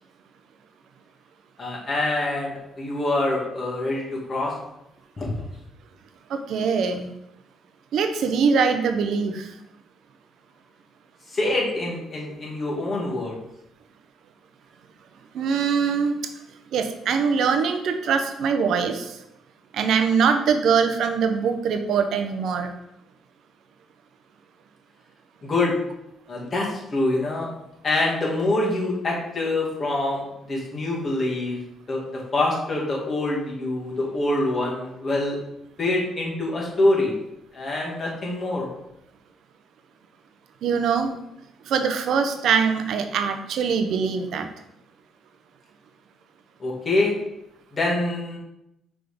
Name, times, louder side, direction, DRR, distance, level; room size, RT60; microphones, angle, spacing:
voice 1, 1.6-4.5 5.2-5.3 11.3-13.3 25.4-25.7 26.3-27.5 27.8-31.6 31.9-32.0 32.3-35.4 35.8-37.1 37.5-38.7 46.6-47.1 47.7-48.4, left 2 dB, 35° left, -4 dB, 2.4 m, -25 dB
voice 2, 6.3-7.1 7.9-9.5 15.3-16.1 16.7-19.1 19.7-22.7 40.6-41.1 41.7-44.5, right 6 dB, 75° right, 7 dB, 0.8 m, -22 dB
5.9 x 3.8 x 5.1 m, 0.84 s
cardioid pair, 90°, 0 cm